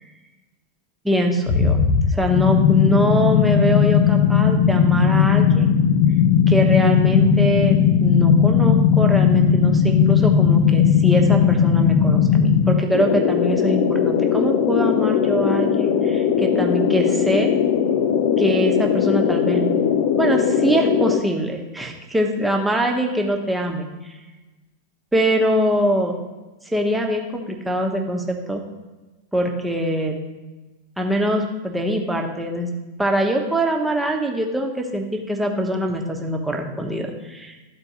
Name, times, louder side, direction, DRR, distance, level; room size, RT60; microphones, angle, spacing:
voice 1, 1.0-1.8 2.1-5.7 6.5-17.5 18.4-19.8 20.2-24.2 25.1-26.1 26.7-28.6 29.3-30.2 31.0-32.7 33.0-37.6, equal, 5° right, 1 dB, 1.1 m, -23 dB
sound 1, 1.5-21.2, left 7 dB, 50° left, 0.6 m, -18 dB
13.0 x 4.4 x 3.0 m, 1.2 s
figure-of-eight pair, 90°, 0 cm